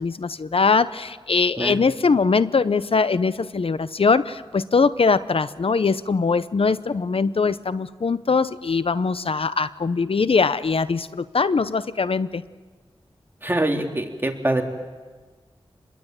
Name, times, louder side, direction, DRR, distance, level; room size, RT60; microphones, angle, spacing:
voice 1, 0.0-12.4, left 4 dB, 65° left, 15 dB, 0.8 m, -21 dB
voice 2, 13.4-14.6, right 1 dB, 20° right, 2 dB, 3.5 m, -24 dB
27.5 x 21.5 x 9.1 m, 1.4 s
wide cardioid pair, 55°, 10 cm